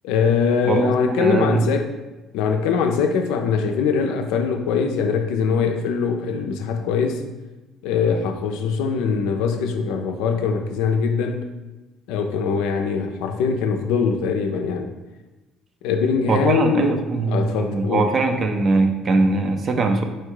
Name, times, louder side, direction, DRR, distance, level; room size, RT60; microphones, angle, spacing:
voice 1, 0.0-1.9 2.3-7.2 7.8-11.5 12.1-14.9 15.8-17.0 17.3-18.1, left 5 dB, 80° left, 5 dB, 0.5 m, -22 dB
voice 2, 0.7-1.7 16.3-20.0, right 3 dB, 40° right, 6 dB, 0.5 m, -21 dB
4.4 x 2.3 x 4.7 m, 1.1 s
supercardioid pair, 90°, 0 cm